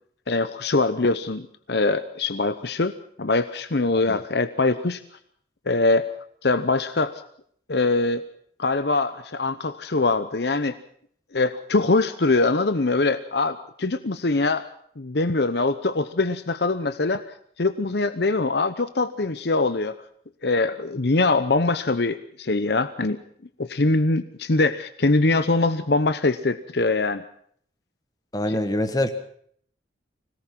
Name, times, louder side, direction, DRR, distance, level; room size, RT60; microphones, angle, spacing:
voice 1, 0.3-5.0 5.7-6.1 6.4-7.2 7.7-8.2 8.6-10.8 11.3-14.7 15.0-20.0 20.4-23.2 23.6-27.2 28.5-28.6, left 3 dB, 65° left, 11 dB, 0.8 m, -23 dB
voice 2, 28.3-29.2, left 1 dB, 20° left, 8 dB, 1.3 m, -24 dB
25.5 x 18.0 x 5.9 m, 0.62 s
head